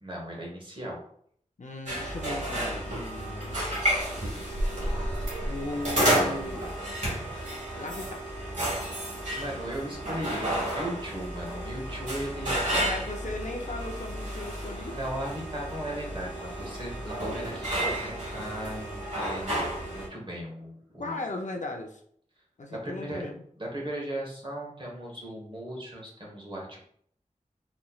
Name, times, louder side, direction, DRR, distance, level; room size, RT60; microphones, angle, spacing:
voice 1, 0.0-1.0 9.3-12.6 12.9-13.0 14.9-19.6 19.9-21.2 22.7-23.3 23.6-26.8, right 1 dB, 35° right, -2 dB, 1.3 m, -37 dB
voice 2, 1.6-3.8 5.5-6.7 7.8-8.3 12.7-15.0 21.0-22.0 22.6-23.4, left 2 dB, 60° left, 2 dB, 0.5 m, -37 dB
sound 1, 1.9-20.1, right 1 dB, 60° right, 1.5 m, -31 dB
4.1 x 3.1 x 2.3 m, 0.64 s
wide cardioid pair, 65°, 14 cm